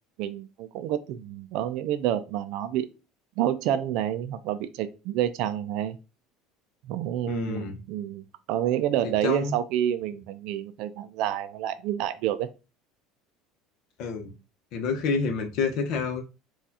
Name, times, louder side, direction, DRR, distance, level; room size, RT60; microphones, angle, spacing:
voice 1, 0.2-2.9 3.4-6.0 6.9-12.5, right 11 dB, 65° right, 0.3 m, -28 dB
voice 2, 7.3-7.8 9.2-9.5 14.0-14.3 14.7-16.3, left 5 dB, 65° left, 0.7 m, -28 dB
4.0 x 2.3 x 2.7 m
supercardioid pair, 90°, 0 cm